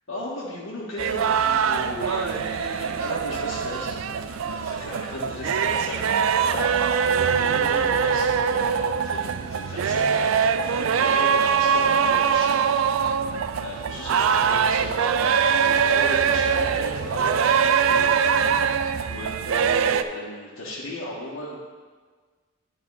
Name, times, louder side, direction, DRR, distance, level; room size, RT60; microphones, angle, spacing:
voice 1, 0.1-12.6 13.0-13.1 13.6-21.6, left 1 dB, 90° left, -9 dB, 1.6 m, -36 dB
sound 1, 1.0-20.0, right 7 dB, 85° right, 0.4 m, -22 dB
10.5 x 4.1 x 5.6 m, 1.5 s
head